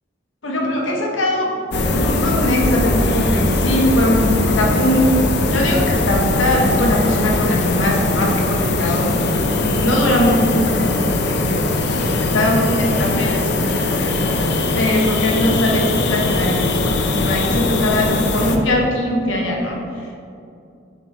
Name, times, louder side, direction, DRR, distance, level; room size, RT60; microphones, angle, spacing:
voice 1, 0.4-1.5 1.9-5.1 5.5-9.1 9.6-14.2 14.7-20.2, left 1 dB, 85° left, -1 dB, 1.0 m, -21 dB
sound 1, 1.7-18.6, left 2 dB, 60° left, 0.5 m, -20 dB
6.1 x 3.8 x 4.1 m, 2.5 s
head